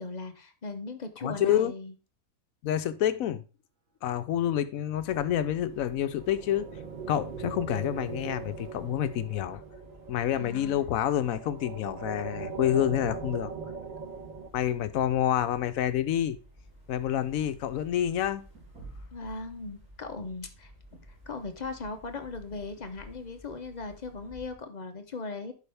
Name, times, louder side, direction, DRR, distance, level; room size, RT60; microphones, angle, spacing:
voice 1, 0.0-1.9 10.3-10.8 19.1-21.0 21.3-25.5, left 3 dB, 40° left, 0.7 m, -38 dB
voice 2, 1.2-1.7 2.6-3.4 4.0-6.7 7.1-9.6 10.1-13.5 14.5-16.4 16.9-18.4, left 11 dB, 70° left, 1.0 m, -28 dB
sound 1, 4.9-24.5, equal, 15° right, 4.4 m, -54 dB
sound 2, 5.6-14.5, right 5 dB, 40° right, 0.7 m, -41 dB
sound 3, 11.9-23.2, equal, 80° right, 2.3 m, -53 dB
11.0 x 4.7 x 3.4 m
omnidirectional pair, 1.5 m